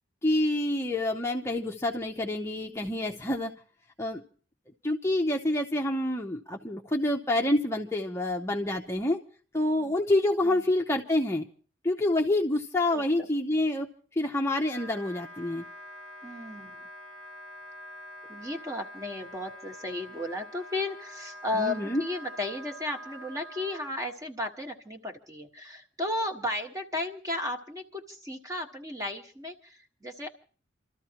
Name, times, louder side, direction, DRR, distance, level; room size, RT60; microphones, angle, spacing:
voice 1, 0.2-3.5 4.0-4.2 4.8-9.2 9.5-11.4 11.8-13.9 14.2-15.6 21.6-22.0, left 1 dB, 15° left, 1 dB, 0.7 m, -27 dB
voice 2, 12.9-13.3 16.2-16.9 18.3-30.3, left 2 dB, 20° right, 4 dB, 1.4 m, -34 dB
Wind instrument woodwind instrument, 14.6-23.9, equal, 90° right, 1.6 m, -46 dB
29.0 x 13.5 x 2.9 m, 0.41 s
head